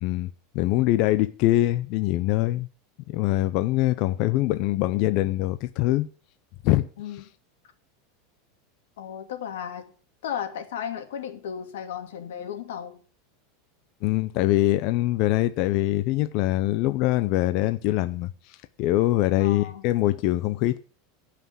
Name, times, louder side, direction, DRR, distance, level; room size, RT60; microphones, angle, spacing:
voice 1, 0.0-2.7 3.1-6.1 6.6-6.9 14.0-20.8, left 16 dB, 40° left, 0.6 m, -23 dB
voice 2, 9.0-9.9 10.2-13.0 19.4-19.8, left 9 dB, 85° left, 2.6 m, -34 dB
17.0 x 5.9 x 7.3 m
supercardioid pair, 180°, 0 cm